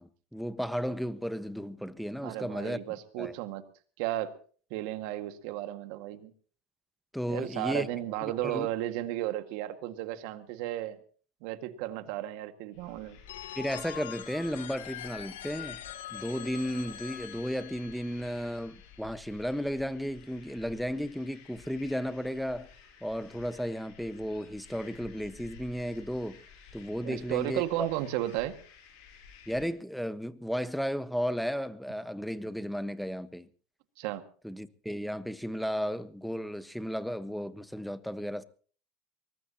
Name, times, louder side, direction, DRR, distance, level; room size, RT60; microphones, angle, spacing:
voice 1, 0.0-2.8 3.2-3.3 7.1-7.9 8.2-8.7 13.6-15.8 16.1-22.7 23.0-26.4 26.7-27.9 29.5-33.5 34.4-38.4, equal, ahead, 1.3 m, -34 dB
voice 2, 2.2-3.6 4.0-4.4 4.7-6.3 7.3-11.0 11.4-13.2 27.0-28.5 34.0-34.2, right 14 dB, 70° right, 1.9 m, -34 dB
sound 1, 12.7-29.7, left 7 dB, 70° left, 7.5 m, -53 dB
Telephone, 13.3-19.0, left 12 dB, 85° left, 1.4 m, -44 dB
23.5 x 20.0 x 2.9 m
hypercardioid pair, 85°, 0 cm